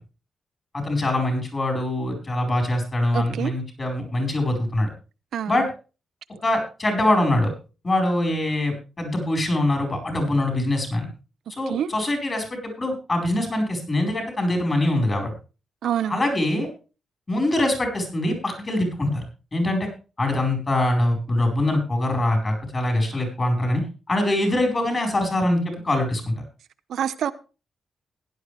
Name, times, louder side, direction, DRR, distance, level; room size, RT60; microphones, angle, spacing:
voice 1, 0.7-4.9 5.5-5.6 6.4-7.5 7.8-11.1 11.5-15.3 16.1-16.7 17.3-19.2 19.5-19.9 20.2-23.8 24.1-26.3, left 1 dB, 30° left, 4.7 m, -23 dB
voice 2, 3.1-3.5 5.3-5.7 11.7-11.9 15.8-16.2 26.9-27.3, right 9 dB, 80° right, 0.6 m, -26 dB
16.0 x 10.5 x 3.4 m
wide cardioid pair, 130°, 0 cm